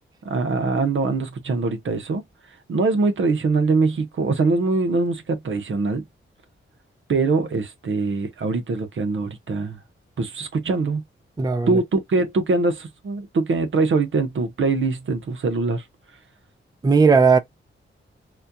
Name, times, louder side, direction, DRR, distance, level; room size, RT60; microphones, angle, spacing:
voice 1, 0.2-2.2 2.7-6.0 7.1-9.8 10.2-11.0 11.7-15.8, right 3 dB, 70° right, 0.9 m, -23 dB
voice 2, 11.4-11.8 16.8-17.4, right 4 dB, 20° right, 0.4 m, -16 dB
4.2 x 2.3 x 2.7 m
cardioid pair, 80°, 21 cm